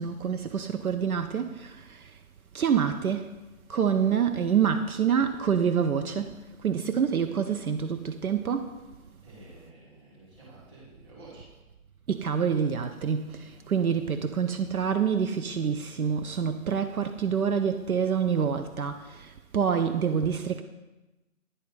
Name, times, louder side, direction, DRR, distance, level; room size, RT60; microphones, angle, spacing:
voice 1, 0.0-2.2 2.5-3.3 3.7-8.8 12.1-20.6, right 7 dB, 75° right, 0.6 m, -27 dB
voice 2, 9.2-11.5 13.5-14.0, right 2 dB, 15° right, 2.1 m, -51 dB
9.9 x 4.1 x 3.8 m
figure-of-eight pair, 155°, 43 cm